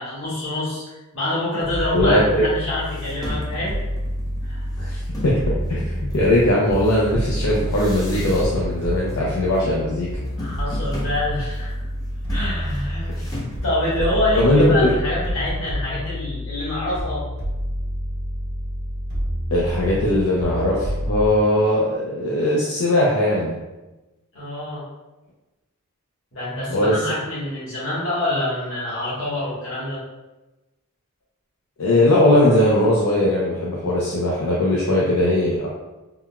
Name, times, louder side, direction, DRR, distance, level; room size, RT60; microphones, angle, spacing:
voice 1, 0.0-3.7 4.4-4.7 10.4-11.7 12.3-13.2 13.6-17.2 24.3-24.8 26.3-30.0, left 1 dB, 65° left, -8 dB, 1.4 m, -26 dB
sound 1, 1.6-21.3, equal, 55° right, 1.1 m, -28 dB
voice 2, 1.9-2.4 4.8-10.1 13.1-13.3 14.4-14.9 19.5-23.6 26.7-27.0 31.8-35.7, left 1 dB, 80° left, -4 dB, 0.5 m, -19 dB
sound 2, 2.4-2.5 2.8-5.5 6.1-8.8 9.0-9.6 9.9-14.5, left 2 dB, 15° left, 0.5 m, -37 dB
3.7 x 2.1 x 2.3 m, 1.1 s
head